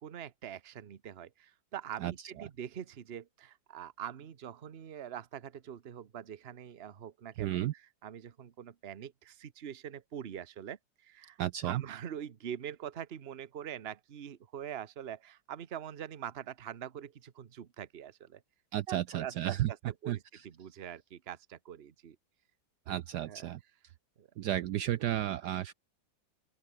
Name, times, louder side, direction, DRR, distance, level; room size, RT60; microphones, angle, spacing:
voice 1, 0.0-7.6 8.0-11.4 11.6-18.4 18.9-22.2 23.2-23.5 24.2-24.3, right 9 dB, 40° right, 1.0 m, -44 dB
voice 2, 7.4-7.7 11.4-11.8 18.7-19.7 20.1-20.4 22.9-23.6 24.4-25.7, right 13 dB, 70° right, 1.1 m, -33 dB
open air
omnidirectional pair, 2.0 m